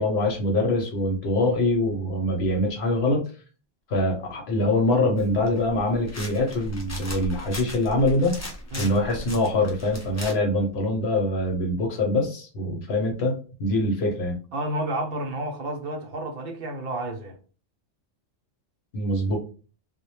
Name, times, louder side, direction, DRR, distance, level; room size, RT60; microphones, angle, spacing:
voice 1, 0.0-3.2 3.9-8.4 8.8-14.3 18.9-19.4, left 1 dB, 70° left, 1.0 m, -24 dB
sound 1, 5.2-10.3, left 1 dB, 25° left, 0.3 m, -38 dB
voice 2, 14.5-17.4, right 1 dB, 60° right, 0.8 m, -30 dB
2.2 x 2.1 x 2.9 m
omnidirectional pair, 1.1 m